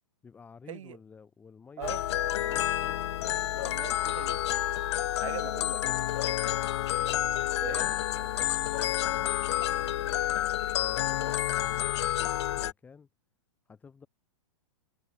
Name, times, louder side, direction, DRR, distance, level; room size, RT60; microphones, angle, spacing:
voice 1, 0.2-1.9 2.4-3.9 7.6-10.1 10.8-13.1 13.7-14.1, left 5 dB, 10° left, 6.6 m, -53 dB
sound 1, 1.8-12.7, left 13 dB, 50° left, 1.0 m, -29 dB
voice 2, 3.6-4.6 5.2-6.1 7.6-7.9, right 10 dB, 60° right, 7.8 m, -41 dB
hypercardioid pair, 170°, 18 cm